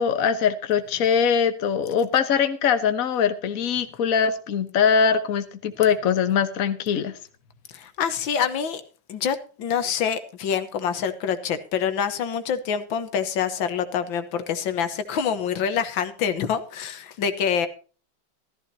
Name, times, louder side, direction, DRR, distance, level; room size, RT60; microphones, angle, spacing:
voice 1, 0.0-7.1, left 7 dB, 50° left, 10 dB, 1.4 m, -22 dB
voice 2, 7.7-8.8 9.1-17.7, left 7 dB, 90° left, 10 dB, 1.9 m, -26 dB
14.5 x 14.0 x 2.8 m, 0.37 s
omnidirectional pair, 2.0 m